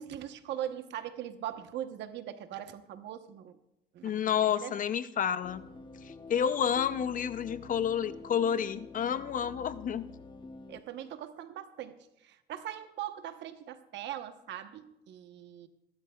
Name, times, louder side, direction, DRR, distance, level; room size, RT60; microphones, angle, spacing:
voice 1, 0.0-3.5 3.9-4.7 10.7-12.0 12.2-15.7, right 11 dB, 75° right, 9 dB, 1.0 m, -41 dB
voice 2, 4.0-5.6 6.0-10.1, left 8 dB, 45° left, 14 dB, 0.6 m, -30 dB
sound 1, 5.4-10.8, left 3 dB, 25° left, 0.9 m, -48 dB
27.0 x 12.5 x 2.4 m, 0.85 s
cardioid pair, 100°, 18 cm